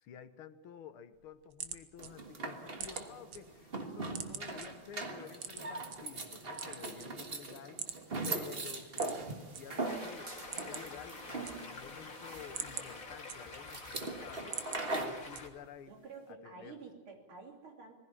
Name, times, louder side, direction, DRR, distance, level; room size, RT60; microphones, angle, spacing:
voice 1, 0.0-7.8 8.2-10.4 10.6-16.0 16.3-16.8, left 8 dB, 90° left, 11 dB, 1.9 m, -51 dB
sound 1, 1.1-3.4 3.8-4.7 5.4-6.0 6.4-7.4 7.8-8.0 8.2-8.3 8.9-9.6 10.0-10.1 10.4-11.0 11.3-11.9 12.3-13.8 14.2-14.8 15.3-15.8, right 8 dB, 60° right, 1.7 m, -43 dB
sound 2, 2.0-15.2, right 2 dB, 30° right, 1.7 m, -41 dB
Stream, 9.8-15.5, left 3 dB, 40° left, 2.5 m, -47 dB
voice 2, 14.8-15.2 15.9-17.9, right 4 dB, 80° right, 3 dB, 3.8 m, -50 dB
20.0 x 15.5 x 10.0 m, 1.2 s
omnidirectional pair, 2.3 m